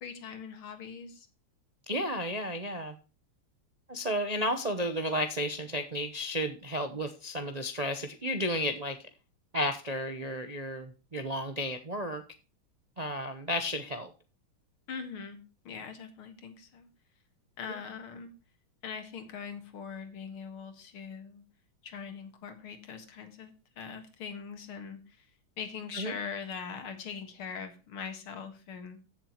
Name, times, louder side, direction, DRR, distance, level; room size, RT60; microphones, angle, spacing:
voice 1, 0.0-1.3 14.9-15.4 15.6-16.9 17.6-18.3 18.8-21.4 21.8-25.3 25.6-29.0, left 6 dB, 90° left, 8 dB, 2.6 m, -41 dB
voice 2, 1.9-3.0 3.9-9.0 9.5-12.2 13.0-14.1 25.9-26.1, equal, 35° right, 7 dB, 0.6 m, -32 dB
15.5 x 7.2 x 3.0 m, 0.33 s
omnidirectional pair, 2.3 m